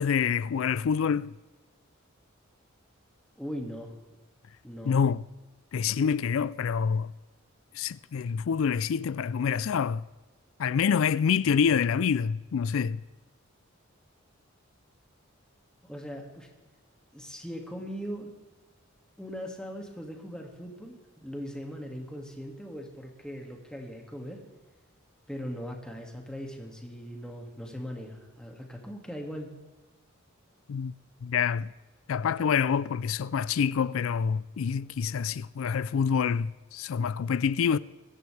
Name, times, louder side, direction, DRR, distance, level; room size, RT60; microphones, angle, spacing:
voice 1, 0.0-1.3 4.8-5.2 5.7-7.1 7.7-10.1 10.6-13.0 30.7-30.9 31.2-31.7 32.1-37.8, left 6 dB, 75° left, 0.4 m, -27 dB
voice 2, 3.4-3.9 4.6-5.0 15.8-16.5 17.1-18.3 19.2-24.4 25.3-29.5, equal, 5° left, 2.1 m, -39 dB
23.5 x 11.0 x 3.4 m
head